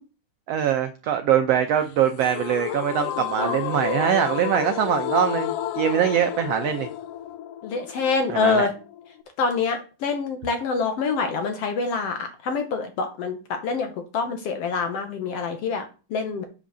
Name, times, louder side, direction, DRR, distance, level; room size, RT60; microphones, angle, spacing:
voice 1, 0.5-6.9 8.3-8.7, right 9 dB, 80° right, 7 dB, 1.4 m, -23 dB
sound 1, 2.2-9.2, left 11 dB, 85° left, 2.2 m, -31 dB
voice 2, 7.6-8.7 9.4-15.9 16.1-16.4, left 4 dB, 65° left, 7 dB, 1.7 m, -26 dB
7.6 x 5.1 x 6.8 m, 0.34 s
omnidirectional pair, 3.6 m